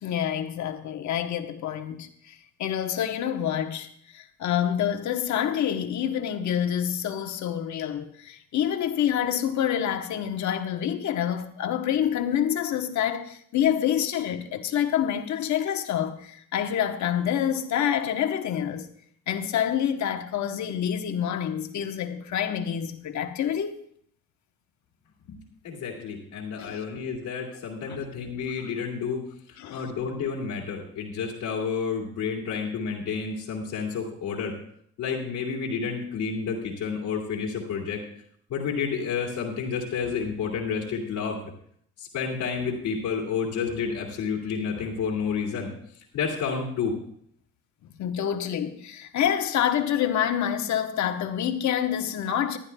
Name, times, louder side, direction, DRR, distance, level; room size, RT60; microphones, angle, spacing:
voice 1, 0.0-18.9 19.3-23.7 26.6-26.8 27.8-28.0 29.6-29.9 48.0-52.6, left 9 dB, 70° left, 1.1 m, -27 dB
voice 2, 25.6-29.2 29.7-34.5 35.0-38.0 38.5-41.4 42.0-45.7 46.1-46.9, left 6 dB, 90° left, 2.3 m, -30 dB
20.5 x 11.0 x 2.2 m
cardioid pair, 90°, 30 cm